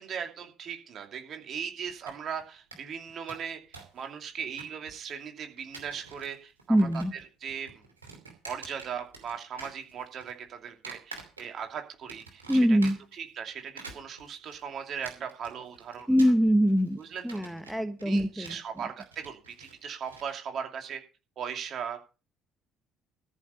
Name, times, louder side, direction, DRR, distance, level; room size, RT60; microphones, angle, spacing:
voice 1, 0.0-3.6 3.9-7.7 8.4-12.8 13.1-16.1 17.0-17.4 18.0-21.0 21.4-22.0, right 7 dB, 45° right, 4 dB, 2.7 m, -38 dB
sound 1, 1.9-2.4 2.7-2.8 3.1-4.0 4.2-5.1 5.6-6.3 6.6-7.2 7.5-9.3 9.6-10.3 10.8-11.7 12.1-13.2 13.6-20.3, right 4 dB, 85° right, 2.8 m, -47 dB
voice 2, 6.7-7.1 12.5-13.0 16.1-17.0 17.2-18.6, equal, ahead, 9 dB, 1.2 m, -23 dB
14.0 x 6.6 x 6.9 m, 0.33 s
figure-of-eight pair, 50°, 0 cm